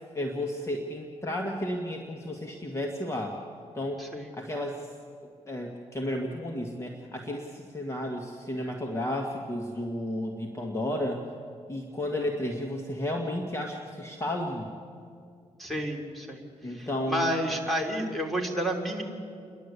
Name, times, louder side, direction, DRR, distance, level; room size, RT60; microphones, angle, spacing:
voice 1, 0.1-3.4 3.7-4.0 4.3-4.9 5.5-11.2 11.7-14.7 16.6-17.3, left 1 dB, 25° left, 1 dB, 1.7 m, -32 dB
voice 2, 15.6-16.4 16.7-19.0, equal, ahead, 1 dB, 3.2 m, -30 dB
29.5 x 11.5 x 8.2 m, 2.4 s
cardioid pair, 95°, 12 cm